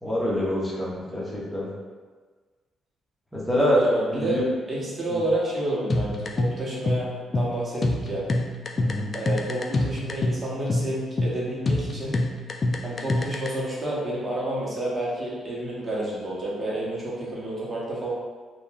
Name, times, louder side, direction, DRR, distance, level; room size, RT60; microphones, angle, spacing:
voice 1, 0.0-1.7 3.3-3.8 4.1-4.4 5.1-5.2 8.8-9.1, left 1 dB, 5° left, -7 dB, 0.9 m, -26 dB
voice 2, 3.7-4.4 4.7-8.2 9.1-12.2 12.8-18.1, right 1 dB, 30° right, -6 dB, 0.9 m, -29 dB
sound 1, 5.9-13.5, left 1 dB, 40° left, 0.3 m, -26 dB
2.9 x 2.3 x 2.3 m, 1.4 s
cardioid pair, 90°, 0 cm